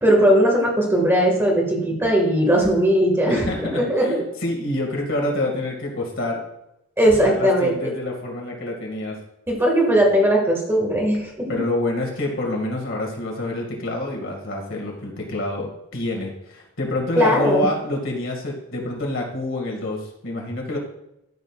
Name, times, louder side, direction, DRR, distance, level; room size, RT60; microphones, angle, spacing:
voice 1, 0.0-4.2 7.0-7.7 9.5-11.5 17.2-17.7, equal, 10° right, -1 dB, 1.9 m, -18 dB
voice 2, 3.3-4.1 4.4-6.4 7.2-9.2 11.5-20.8, left 2 dB, 65° left, 0 dB, 2.2 m, -27 dB
13.5 x 6.6 x 2.5 m, 0.84 s
head